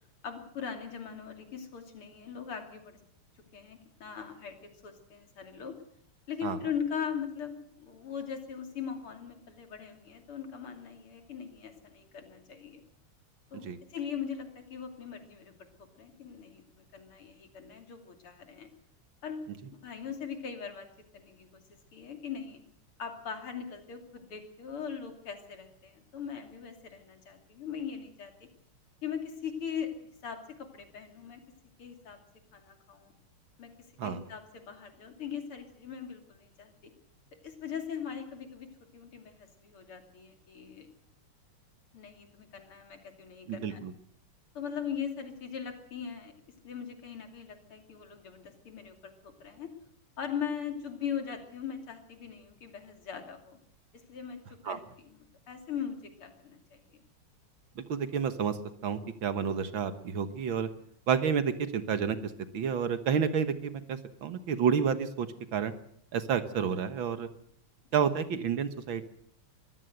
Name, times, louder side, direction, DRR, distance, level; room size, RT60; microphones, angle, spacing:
voice 1, 0.2-3.0 3.5-4.6 4.8-5.8 6.3-12.8 13.5-18.7 19.2-20.9 21.1-21.5 21.9-22.6 23.0-28.3 29.0-29.9 30.2-31.4 31.8-32.2 32.5-33.1 33.6-33.7 34.0-36.9 37.4-38.7 38.9-40.9 41.9-43.8 44.6-46.3 46.6-49.7 50.2-53.6 54.1-54.4 54.7-55.2 55.5-57.0, left 7 dB, 75° left, 6 dB, 3.6 m, -40 dB
voice 2, 43.5-43.9 54.6-54.8 57.8-58.6 58.8-60.7 61.1-65.7 66.1-67.3 67.9-69.0, right 7 dB, 65° right, 11 dB, 2.0 m, -30 dB
23.0 x 16.0 x 7.9 m, 0.65 s
omnidirectional pair, 2.4 m